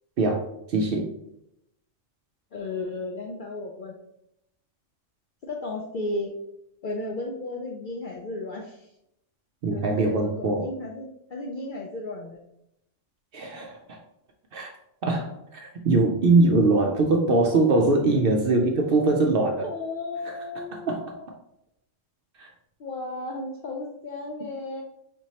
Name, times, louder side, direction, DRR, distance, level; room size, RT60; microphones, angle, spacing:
voice 1, 0.7-1.1 9.6-10.7 13.3-13.8 14.5-14.7 15.0-19.7 20.3-20.4 20.9-21.0 22.4-22.5, right 3 dB, 60° right, 1 dB, 0.6 m, -22 dB
voice 2, 2.5-4.0 5.4-6.4 6.8-8.9 9.7-12.4 19.6-21.2 22.8-24.8, left 2 dB, 65° left, 0 dB, 0.5 m, -34 dB
4.3 x 3.0 x 2.8 m, 0.81 s
omnidirectional pair, 1.3 m